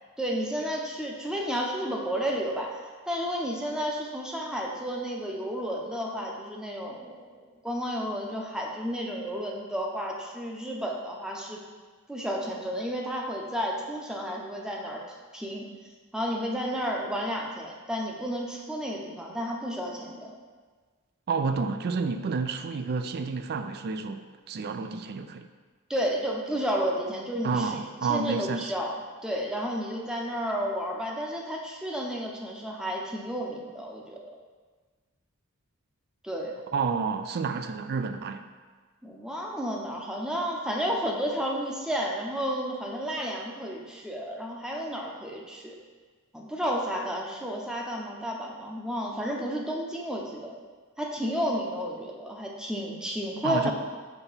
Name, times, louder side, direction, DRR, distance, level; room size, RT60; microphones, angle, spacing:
voice 1, 0.2-2.7 3.1-11.6 12.1-15.7 16.1-20.3 25.9-28.9 29.2-34.2 36.2-36.5 39.0-45.8 46.3-50.5 51.0-53.7, equal, 5° right, -1 dB, 0.7 m, -32 dB
voice 2, 21.3-25.5 27.4-28.7 36.7-38.5 53.4-53.7, right 5 dB, 45° right, 8 dB, 0.4 m, -30 dB
5.9 x 3.4 x 5.5 m, 1.5 s
head